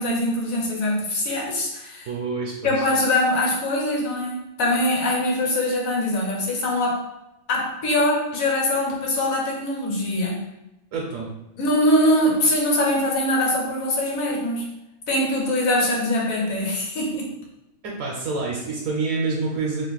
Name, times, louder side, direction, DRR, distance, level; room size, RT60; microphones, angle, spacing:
voice 1, 0.0-2.1 2.6-7.0 7.5-10.4 11.6-14.7 15.1-17.3, left 1 dB, 70° left, -1 dB, 1.2 m, -23 dB
voice 2, 2.1-2.8 10.9-11.3 17.8-19.9, right 3 dB, 70° right, -2 dB, 1.0 m, -27 dB
2.8 x 2.5 x 3.9 m, 0.90 s
omnidirectional pair, 1.5 m